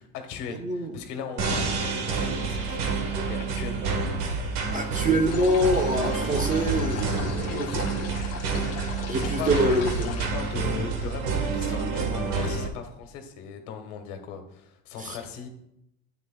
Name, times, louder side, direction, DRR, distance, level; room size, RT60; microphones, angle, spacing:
voice 1, 0.0-4.3 9.2-9.8 10.3-15.5, left 6 dB, 90° left, 6 dB, 1.4 m, -38 dB
voice 2, 0.6-0.9 4.7-7.7 9.1-10.1 15.0-15.2, right 1 dB, 20° right, 4 dB, 0.8 m, -25 dB
sound 1, 1.4-12.7, right 4 dB, 85° right, 1.4 m, -28 dB
sound 2, 5.3-10.3, left 8 dB, 40° left, 0.8 m, -37 dB
9.9 x 9.0 x 2.2 m, 0.79 s
cardioid pair, 110°, 38 cm